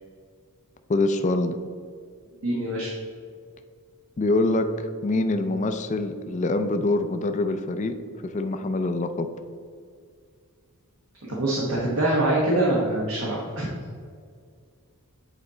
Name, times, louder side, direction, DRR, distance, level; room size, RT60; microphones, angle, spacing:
voice 1, 0.9-1.6 4.2-4.7 5.0-8.0 8.3-9.3, left 2 dB, 30° left, 7 dB, 0.4 m, -24 dB
voice 2, 2.4-2.9 11.3-13.7, right 1 dB, 65° right, -4 dB, 1.2 m, -24 dB
8.1 x 4.1 x 3.8 m, 2.1 s
head